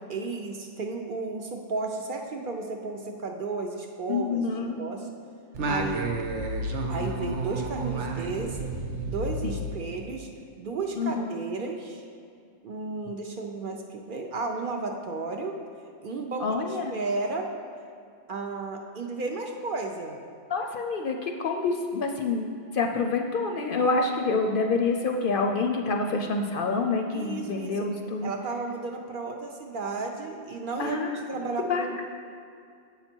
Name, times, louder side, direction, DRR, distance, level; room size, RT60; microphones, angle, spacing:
voice 1, 0.1-5.1 5.6-6.1 6.9-8.7 9.0-10.3 10.6-12.0 12.6-15.6 16.0-17.5 18.3-20.2 27.1-27.9 28.2-32.1, right 3 dB, 55° right, 2 dB, 0.7 m, -33 dB
voice 2, 4.1-4.8 9.4-9.5 11.0-11.3 16.4-16.9 20.5-22.5 22.7-28.3 30.8-31.2 31.7-32.1, left 3 dB, 60° left, 3 dB, 0.6 m, -27 dB
Singing, 5.5-10.3, right 2 dB, 90° right, 1.0 m, -31 dB
8.0 x 5.8 x 4.4 m, 2.4 s
omnidirectional pair, 1.2 m